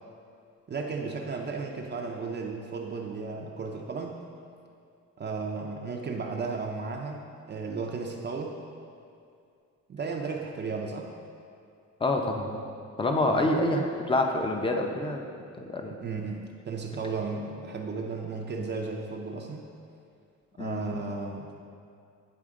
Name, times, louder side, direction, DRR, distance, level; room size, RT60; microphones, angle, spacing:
voice 1, 0.7-4.2 5.2-8.5 9.9-11.1 13.3-13.5 15.9-19.6 20.6-21.5, right 4 dB, 35° right, 1 dB, 0.5 m, -34 dB
voice 2, 12.0-12.6 13.0-15.2 15.6-15.9 20.6-20.8, left 2 dB, 15° left, 3 dB, 0.6 m, -27 dB
9.9 x 4.2 x 3.7 m, 2.4 s
cardioid pair, 140°, 31 cm